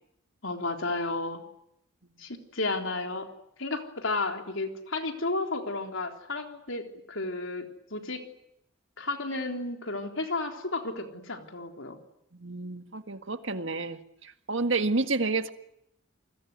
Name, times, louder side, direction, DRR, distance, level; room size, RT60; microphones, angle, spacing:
voice 1, 0.4-1.4 2.2-3.3 3.6-8.2 9.0-12.0, left 2 dB, 70° left, 4 dB, 3.7 m, -32 dB
voice 2, 12.3-15.5, right 3 dB, 65° right, 8 dB, 1.8 m, -30 dB
29.0 x 21.0 x 9.4 m, 0.78 s
head